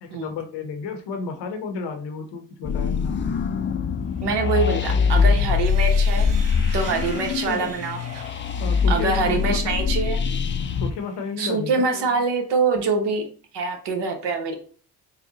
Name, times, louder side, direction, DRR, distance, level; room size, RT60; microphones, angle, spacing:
voice 1, 0.0-3.3 7.4-7.7 8.6-9.9 10.8-11.8, left 4 dB, 80° left, 5 dB, 0.8 m, -32 dB
sound 1, 2.6-10.9, left 6 dB, 30° left, 0.4 m, -23 dB
Sawing, 4.1-11.6, right 4 dB, 35° right, 0.9 m, -45 dB
voice 2, 4.2-6.3 6.7-8.2 8.9-10.2 11.4-13.2 13.5-14.6, right 4 dB, 75° right, 4 dB, 1.0 m, -24 dB
4.0 x 2.2 x 3.8 m, 0.43 s
supercardioid pair, 55°, 42 cm